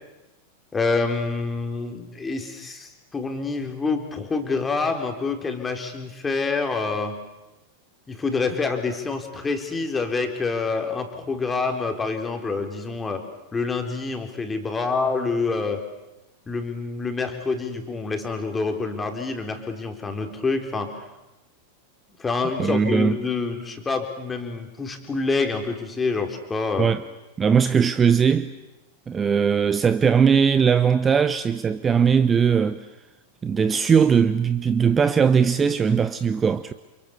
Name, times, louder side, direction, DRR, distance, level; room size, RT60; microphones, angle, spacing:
voice 1, 0.7-7.2 8.1-13.2 13.5-15.8 16.5-21.0 22.2-26.9, left 4 dB, 15° left, 4.0 m, -27 dB
voice 2, 22.6-23.2 26.8-27.0 27.4-28.5 29.1-32.9 33.4-36.7, right 6 dB, 20° right, 0.9 m, -19 dB
29.5 x 28.5 x 7.0 m
figure-of-eight pair, 90°, 0 cm